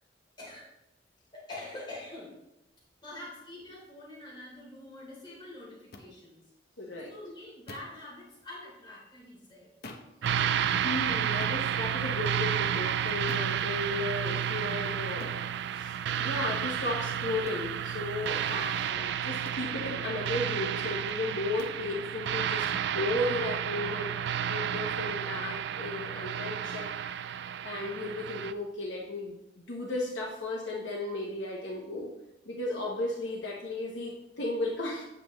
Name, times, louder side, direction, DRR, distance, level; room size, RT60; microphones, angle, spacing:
voice 1, 1.3-2.3 3.0-6.4 7.1-9.7, left 2 dB, 25° left, -6 dB, 3.3 m, -45 dB
sound 1, 5.9-6.1 7.7-8.0 9.8-10.2 11.4-11.6 13.3-13.6 15.2-15.4 17.5-17.7 19.4-19.7 21.6-21.8, left 2 dB, 60° left, 0.8 m, -45 dB
voice 2, 6.8-7.1 10.8-15.4 15.7-24.1 24.5-26.9 27.6-29.4 29.7-32.1 32.5-35.0, left 2 dB, 85° left, -3 dB, 1.1 m, -35 dB
sound 2, 10.2-28.5, right 9 dB, 65° right, 0.3 m, -31 dB
8.8 x 7.6 x 3.1 m, 0.90 s
head